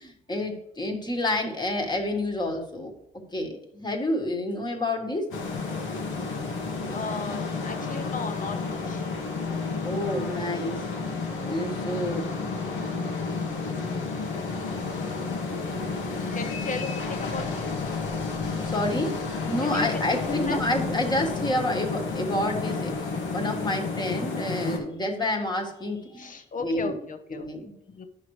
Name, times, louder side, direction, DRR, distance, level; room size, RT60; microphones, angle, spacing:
voice 1, 0.0-2.9 3.3-5.3 9.8-10.8 11.4-12.3 18.4-19.2 19.4-27.0 27.3-27.7, left 1 dB, 20° left, 2 dB, 1.5 m, -29 dB
sound 1, 5.3-24.8, left 4 dB, 85° left, 1.4 m, -31 dB
voice 2, 6.9-9.1 16.3-17.7 19.5-20.6 26.2-27.5 27.9-28.0, left 4 dB, 40° left, 7 dB, 0.9 m, -36 dB
9.6 x 5.7 x 3.2 m, 0.77 s
cardioid pair, 90°, 20 cm